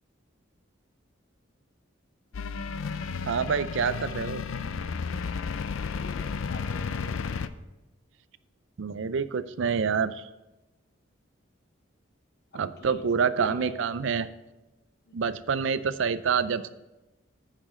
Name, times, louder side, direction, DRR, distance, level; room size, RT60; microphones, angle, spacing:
sound 1, 2.3-7.5, left 5 dB, 85° left, 0.5 m, -33 dB
voice 1, 3.2-4.4 8.8-10.3 12.5-14.3 15.1-16.8, right 6 dB, 70° right, 14 dB, 0.4 m, -27 dB
voice 2, 5.8-7.2 12.5-13.1 13.3-13.8 15.1-15.3, left 2 dB, 55° left, 7 dB, 0.9 m, -44 dB
9.0 x 5.0 x 6.3 m, 1.0 s
head